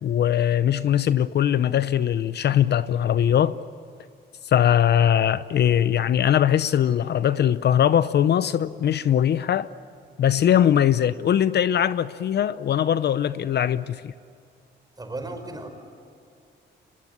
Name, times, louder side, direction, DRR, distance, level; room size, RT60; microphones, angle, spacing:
voice 1, 0.0-3.6 4.4-9.7 10.2-14.1, left 10 dB, 55° left, 0.7 m, -21 dB
voice 2, 15.0-15.7, right 2 dB, 20° right, 5.1 m, -35 dB
24.0 x 21.0 x 9.8 m
cardioid pair, 90°, 20 cm